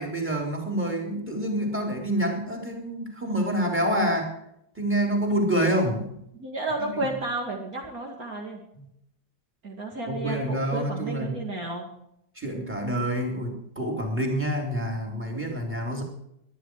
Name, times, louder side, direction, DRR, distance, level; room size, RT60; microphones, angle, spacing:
voice 1, 0.0-4.3 4.7-6.2 6.9-7.2 8.7-8.9 10.1-11.5 12.3-16.0, right 1 dB, 5° right, 1 dB, 4.1 m, -27 dB
voice 2, 6.4-8.6 9.6-11.8, right 2 dB, 50° right, 0 dB, 2.9 m, -32 dB
22.5 x 11.0 x 4.9 m, 0.76 s
omnidirectional pair, 2.0 m